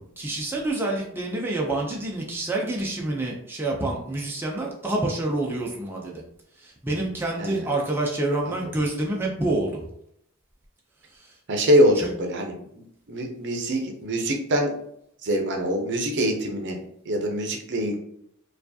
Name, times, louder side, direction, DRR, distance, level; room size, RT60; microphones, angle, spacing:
voice 1, 0.2-6.2 6.6-9.8 12.0-12.1, right 2 dB, 10° right, -2 dB, 0.4 m, -27 dB
voice 2, 7.4-7.7 8.5-8.7 11.5-14.7 15.2-18.0, equal, 55° right, 2 dB, 0.6 m, -24 dB
4.5 x 2.3 x 2.7 m, 0.73 s
head